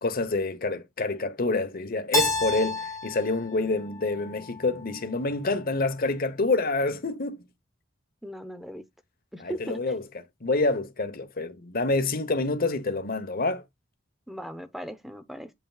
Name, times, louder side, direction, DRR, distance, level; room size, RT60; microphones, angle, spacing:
voice 1, 0.0-7.4 9.4-10.0 10.4-13.6, left 3 dB, 45° left, 1.1 m, -27 dB
Keyboard (musical), 2.1-4.9, left 2 dB, 15° left, 1.3 m, -30 dB
voice 2, 8.2-8.8 9.3-9.8 14.3-15.5, equal, ahead, 0.8 m, -38 dB
8.6 x 5.6 x 2.4 m
head